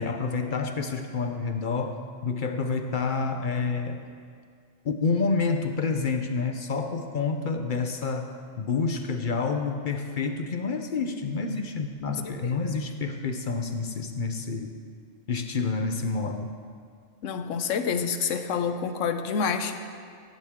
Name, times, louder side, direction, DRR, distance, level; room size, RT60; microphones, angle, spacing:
voice 1, 0.0-4.0 4.8-14.7 15.3-16.5, left 4 dB, 50° left, 6 dB, 0.7 m, -28 dB
voice 2, 12.2-12.6 17.2-19.8, left 6 dB, 75° left, 8 dB, 1.1 m, -28 dB
16.5 x 10.5 x 3.7 m, 2.1 s
omnidirectional pair, 1.3 m